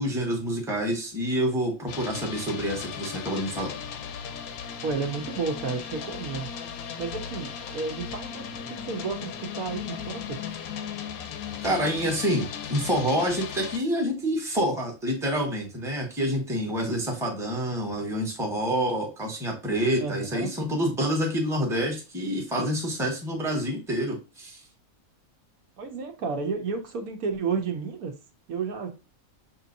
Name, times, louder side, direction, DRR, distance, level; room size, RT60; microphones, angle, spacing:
voice 1, 0.0-3.7 11.6-24.6, equal, ahead, 0.9 m, -27 dB
sound 1, 1.9-13.8, left 7 dB, 85° left, 1.1 m, -37 dB
voice 2, 4.8-6.5 7.0-10.4 20.0-20.5 25.8-28.1 28.5-28.9, right 5 dB, 80° right, 1.3 m, -32 dB
5.9 x 2.9 x 2.5 m
omnidirectional pair, 1.5 m